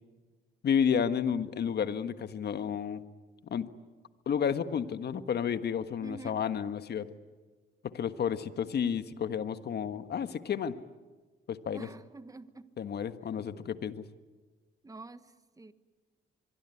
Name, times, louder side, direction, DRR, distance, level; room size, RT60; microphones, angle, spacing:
voice 1, 0.6-3.0 3.5-3.7 4.2-7.1 7.9-10.7 11.5-11.9 12.8-14.0, left 7 dB, 55° left, 11 dB, 1.5 m, -31 dB
voice 2, 6.0-6.4 11.7-12.7 14.8-15.7, right 3 dB, 15° right, 12 dB, 1.4 m, -47 dB
25.5 x 22.5 x 9.9 m, 1.3 s
cardioid pair, 90°, 20 cm